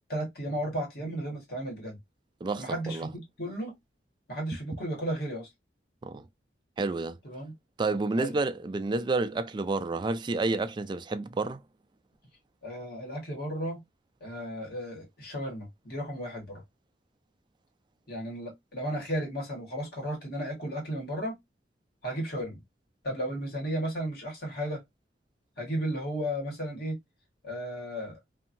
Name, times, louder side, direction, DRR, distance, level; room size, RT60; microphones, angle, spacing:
voice 1, 0.1-2.0 2.6-3.7 4.3-5.5 7.2-7.5 8.2-8.4 12.6-13.8 14.2-16.6 18.1-21.4 22.0-22.6 23.0-24.8 25.6-27.0 27.4-28.2, equal, 60° left, 1.6 m, -34 dB
voice 2, 2.4-3.1 6.0-6.2 6.8-7.2 7.8-11.6, right 3 dB, 25° right, 0.3 m, -30 dB
2.7 x 2.6 x 2.6 m
head